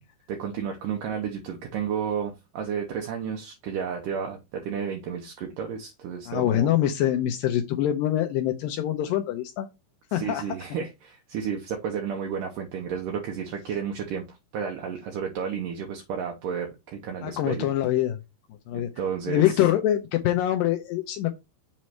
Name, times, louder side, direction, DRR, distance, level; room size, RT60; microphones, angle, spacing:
voice 1, 0.3-6.7 10.1-17.7 18.7-19.6, right 7 dB, 75° right, 2.1 m, -32 dB
voice 2, 6.3-9.7 10.1-10.4 17.2-18.2 18.7-18.9 19.3-21.3, left 12 dB, 85° left, 2.0 m, -24 dB
7.5 x 3.1 x 4.4 m
omnidirectional pair, 4.7 m